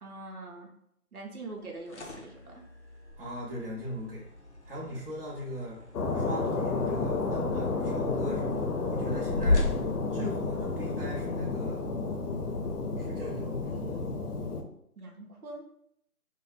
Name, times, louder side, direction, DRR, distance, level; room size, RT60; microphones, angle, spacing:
voice 1, 0.0-0.7 1.1-2.6 15.0-15.6, right 2 dB, 70° right, -1 dB, 0.8 m, -43 dB
sound 1, 1.6-11.0, left 2 dB, 50° left, 0.5 m, -36 dB
voice 2, 3.2-4.2 4.7-5.8 6.1-9.8 10.1-11.8 13.0-14.1, equal, 40° right, -6 dB, 0.8 m, -39 dB
sound 2, 5.9-14.6, left 3 dB, 90° left, 0.7 m, -31 dB
2.6 x 2.1 x 4.0 m, 0.73 s
figure-of-eight pair, 175°, 45 cm